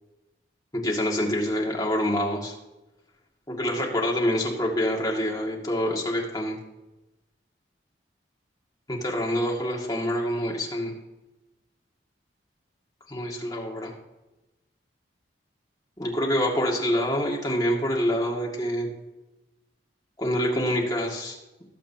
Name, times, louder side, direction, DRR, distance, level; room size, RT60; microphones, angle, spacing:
voice 1, 0.7-2.5 3.5-6.6 8.9-10.9 13.1-13.9 16.0-18.9 20.2-21.4, equal, 20° left, -2 dB, 2.0 m, -26 dB
20.5 x 7.5 x 2.8 m, 1.0 s
head